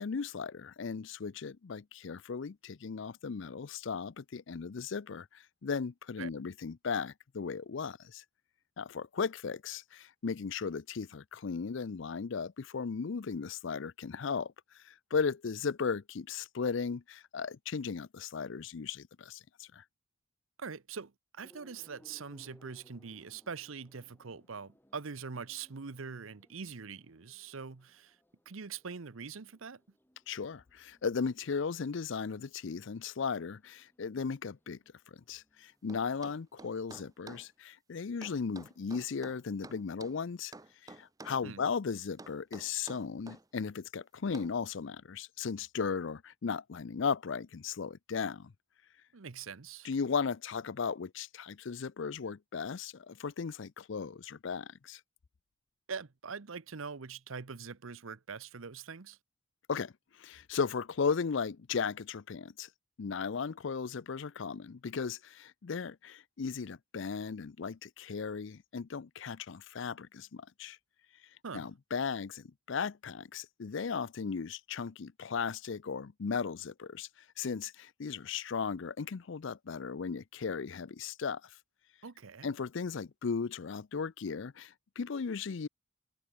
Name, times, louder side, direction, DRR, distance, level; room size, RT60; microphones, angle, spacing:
voice 1, 0.0-8.2 8.8-19.8 30.3-34.8 35.1-40.5 40.8-48.5 49.8-55.0 59.7-62.7 63.0-70.8 71.5-81.6 82.4-85.7, left 5 dB, 65° left, 0.5 m, -36 dB
voice 2, 20.6-28.2 28.5-29.8 41.4-41.6 49.1-49.9 55.9-59.2 71.4-71.7 82.0-82.5, right 5 dB, 80° right, 0.8 m, -43 dB
sound 1, 21.4-37.3, equal, 10° left, 7.6 m, -66 dB
sound 2, 35.9-37.5 38.2-40.2 40.5-41.5 42.2-43.4 44.3-44.6, right 2 dB, 15° right, 0.7 m, -50 dB
head